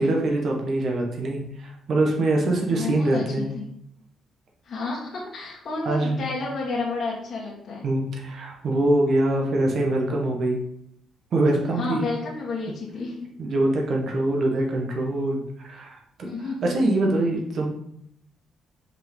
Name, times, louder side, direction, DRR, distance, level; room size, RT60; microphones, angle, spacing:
voice 1, 0.0-3.5 5.8-6.2 7.8-10.6 11.3-12.0 13.4-16.3 16.6-17.7, right 2 dB, 60° right, 0 dB, 1.5 m, -24 dB
voice 2, 2.7-3.6 4.7-7.8 11.8-13.3 16.2-16.7, left 3 dB, 50° left, -5 dB, 1.9 m, -31 dB
5.6 x 4.9 x 3.9 m, 0.71 s
cardioid pair, 90°, 0 cm